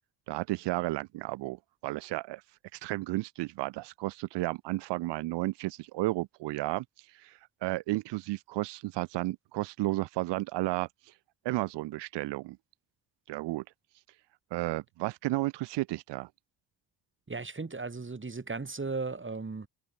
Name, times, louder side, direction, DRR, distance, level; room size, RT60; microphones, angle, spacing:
voice 1, 0.3-2.4 2.7-11.1 11.4-12.6 13.3-13.6 14.5-16.3, right 19 dB, 90° right, 0.8 m, -33 dB
voice 2, 17.3-19.7, right 3 dB, 30° right, 4.8 m, -36 dB
supercardioid pair, 60°, 41 cm